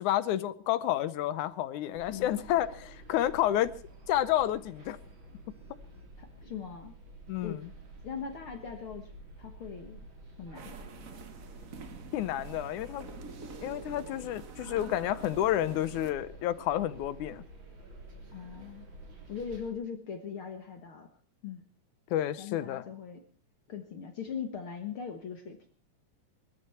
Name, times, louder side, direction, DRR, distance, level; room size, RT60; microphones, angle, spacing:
voice 1, 0.0-3.7 4.1-5.0 7.3-7.7 12.1-13.1 13.6-17.4 22.1-22.8, left 12 dB, 90° left, 2.3 m, -30 dB
sound 1, 1.9-19.7, right 2 dB, 40° right, 3.9 m, -50 dB
voice 2, 2.1-2.4 6.2-6.9 7.4-7.6 8.0-9.1 9.4-10.0 10.4-10.9 18.3-18.9 19.3-21.1 21.4-21.6 22.4-23.2 23.7-25.7, left 7 dB, 55° left, 1.9 m, -40 dB
sound 2, 10.5-16.1, right 4 dB, 80° right, 0.7 m, -47 dB
20.5 x 13.5 x 4.4 m
omnidirectional pair, 3.4 m